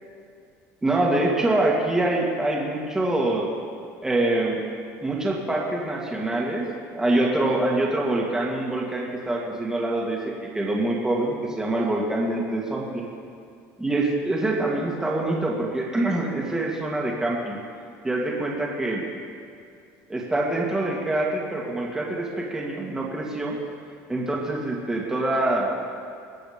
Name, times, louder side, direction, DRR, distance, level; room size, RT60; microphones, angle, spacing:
voice 1, 0.8-3.5 4.0-4.7 5.0-13.1 13.8-17.6 18.0-19.0 20.1-23.6 24.1-25.7, right 2 dB, 10° right, -3 dB, 2.2 m, -25 dB
21.5 x 7.8 x 5.2 m, 2.3 s
cardioid pair, 135°, 6 cm